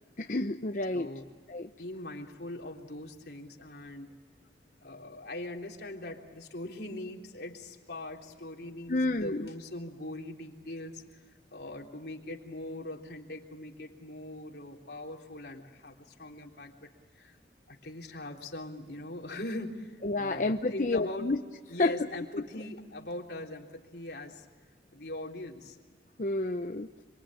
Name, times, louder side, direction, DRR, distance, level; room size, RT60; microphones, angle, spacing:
voice 1, 0.2-1.1 1.5-1.7 8.9-9.5 20.0-21.4 21.8-21.9 26.2-26.9, left 2 dB, 45° left, 6 dB, 0.8 m, -29 dB
voice 2, 0.9-1.3 1.8-4.2 4.8-11.2 11.5-17.4 17.7-21.3 21.7-24.5 24.9-25.8, left 1 dB, 65° left, 0 dB, 3.6 m, -41 dB
27.0 x 24.5 x 9.0 m, 1.5 s
head